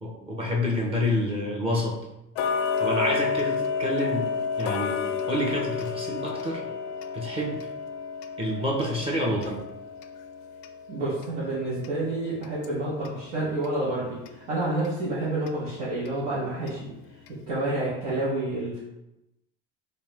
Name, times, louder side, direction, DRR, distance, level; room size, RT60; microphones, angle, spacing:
voice 1, 0.0-2.0 2.8-4.3 4.6-6.7 7.1-7.6 8.4-9.6, left 1 dB, 20° right, -3 dB, 0.8 m, -28 dB
Tick-tock, 2.4-13.2 13.6-13.7 14.3-14.4 14.8-14.9 15.5-15.6 16.1-16.2 16.7-16.8 17.3-17.4, left 6 dB, 80° left, 0.5 m, -31 dB
voice 2, 10.9-14.2 14.5-16.9 17.5-18.8, right 2 dB, 85° right, -9 dB, 1.4 m, -29 dB
3.3 x 2.8 x 3.4 m, 0.90 s
supercardioid pair, 120°, 30 cm